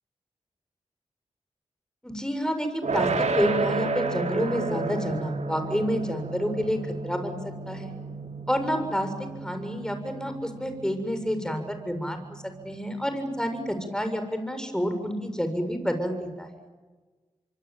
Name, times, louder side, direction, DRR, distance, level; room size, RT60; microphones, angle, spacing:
voice 1, 2.0-3.1 3.4-6.8 7.0-7.4 7.7-7.9 8.5-9.1 9.4-16.6, equal, 5° left, 7 dB, 7.1 m, -29 dB
sound 1, 2.8-13.8, right 3 dB, 70° right, 3.8 m, -32 dB
26.0 x 24.5 x 9.1 m, 1.3 s
cardioid pair, 45°, 12 cm